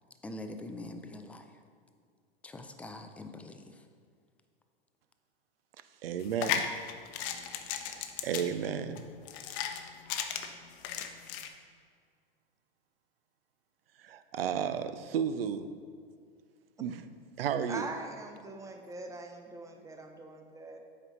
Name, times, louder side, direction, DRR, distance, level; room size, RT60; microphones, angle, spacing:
voice 1, 0.2-1.5 2.4-3.9, left 2 dB, 5° left, 6 dB, 0.3 m, -44 dB
voice 2, 6.0-6.6 7.7-9.1 14.0-15.7 16.8-17.0 17.4-17.9, right 8 dB, 70° right, 11 dB, 0.6 m, -33 dB
sound 1, 6.2-11.5, left 9 dB, 40° left, 0.7 m, -36 dB
voice 3, 17.7-20.8, right 3 dB, 10° right, 4 dB, 0.8 m, -42 dB
8.1 x 5.2 x 4.0 m, 2.2 s
hypercardioid pair, 100°, 30 cm